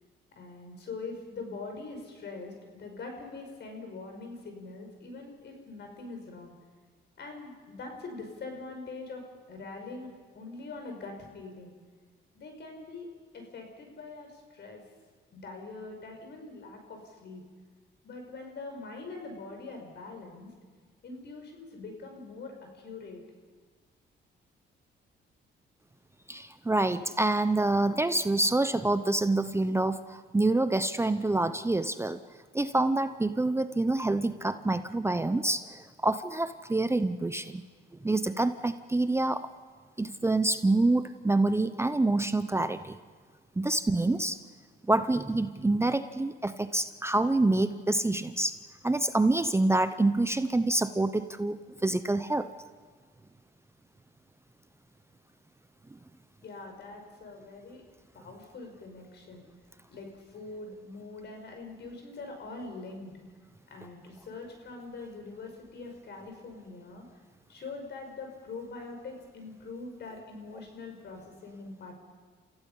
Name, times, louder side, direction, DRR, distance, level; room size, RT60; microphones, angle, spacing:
voice 1, 0.4-2.5 2.8-6.6 7.2-9.2 9.5-11.8 12.3-13.1 13.3-14.8 15.3-17.4 18.0-20.5 21.0-23.2 56.4-57.8 58.1-59.5 59.9-63.1 63.7-67.0 67.5-71.9, left 3 dB, 60° left, 3 dB, 5.5 m, -43 dB
voice 2, 26.3-32.2 32.5-37.6 38.0-39.5 40.0-43.0 43.6-44.4 44.8-48.6 48.8-52.5, right 2 dB, 15° right, 11 dB, 0.7 m, -27 dB
30.0 x 15.5 x 5.6 m, 1.5 s
cardioid pair, 90°, 20 cm